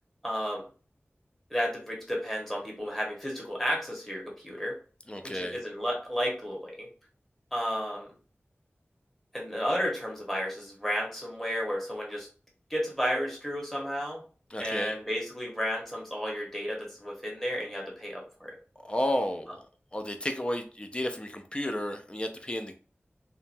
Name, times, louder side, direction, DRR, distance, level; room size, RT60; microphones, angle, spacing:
voice 1, 0.2-0.6 1.5-4.7 5.2-6.9 7.5-8.1 9.3-12.3 12.7-14.2 14.6-18.5, equal, 5° left, -2 dB, 1.2 m, -32 dB
voice 2, 5.1-5.6 14.5-14.9 18.8-19.6 19.9-22.7, left 1 dB, 25° left, 6 dB, 0.5 m, -32 dB
2.8 x 2.2 x 2.6 m, 0.38 s
wide cardioid pair, 50°, 4 cm